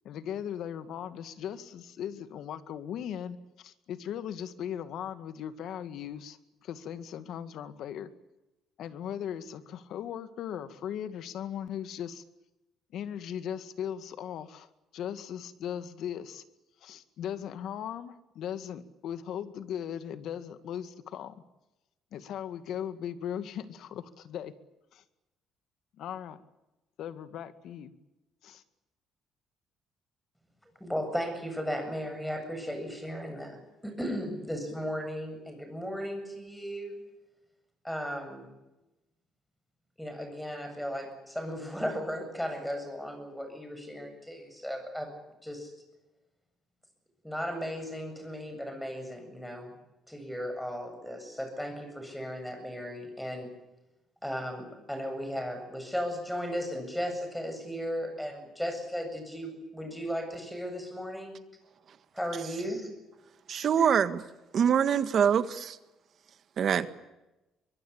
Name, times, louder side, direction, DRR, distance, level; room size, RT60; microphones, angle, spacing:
voice 1, 0.0-8.1 8.8-12.2 12.9-14.7 14.9-16.4 16.8-21.4 22.1-24.5 24.9-25.0 26.0-26.4 27.0-27.9 28.4-28.6, left 9 dB, 70° left, 12 dB, 2.0 m, -38 dB
voice 2, 30.8-37.0 37.8-38.5 40.0-45.1 45.4-45.7 47.2-49.7 50.1-53.5 54.2-61.4 62.1-62.9 63.8-63.9, equal, 5° left, 7 dB, 7.9 m, -36 dB
voice 3, 63.5-64.2 64.5-65.8 66.6-66.9, right 8 dB, 50° right, 12 dB, 1.6 m, -24 dB
24.0 x 22.5 x 8.7 m, 0.99 s
cardioid pair, 120°, 0 cm